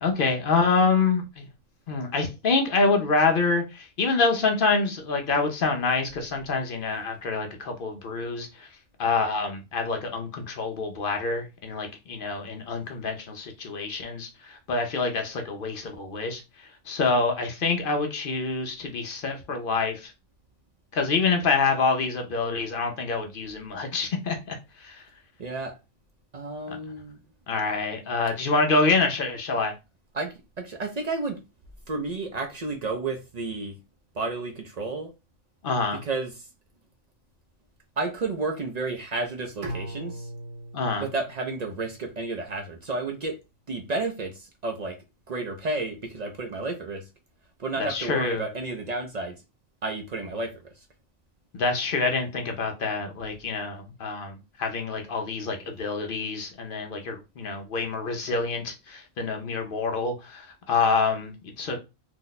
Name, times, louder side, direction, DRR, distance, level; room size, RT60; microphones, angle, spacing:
voice 1, 0.0-1.4 1.9-8.7 9.0-16.4 16.9-20.1 20.9-24.6 24.8-25.0 27.5-29.7 35.6-36.0 40.7-41.1 47.8-48.4 51.5-61.8, left 4 dB, 60° left, 0.6 m, -26 dB
voice 2, 25.4-25.7 26.3-27.2 30.1-31.4 31.9-33.7 34.2-35.1 36.0-36.3 38.0-40.3 41.0-43.4 43.7-45.0 45.3-47.0 47.6-49.3 49.8-50.7, right 3 dB, 65° right, 0.4 m, -31 dB
Bowed string instrument, 39.6-42.6, right 1 dB, 80° right, 1.1 m, -40 dB
2.7 x 2.1 x 3.9 m
omnidirectional pair, 1.3 m